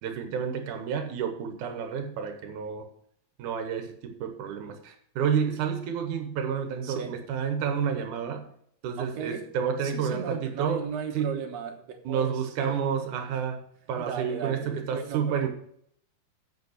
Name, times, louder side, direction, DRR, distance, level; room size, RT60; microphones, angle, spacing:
voice 1, 0.0-2.9 3.4-8.5 8.8-10.9 11.1-11.4 12.1-13.6 13.9-15.5, right 7 dB, 85° right, 6 dB, 2.6 m, -30 dB
voice 2, 6.8-7.2 9.0-9.4 9.8-12.9 14.0-15.5, right 7 dB, 65° right, 3 dB, 2.4 m, -36 dB
8.2 x 6.4 x 7.7 m, 0.67 s
omnidirectional pair, 3.4 m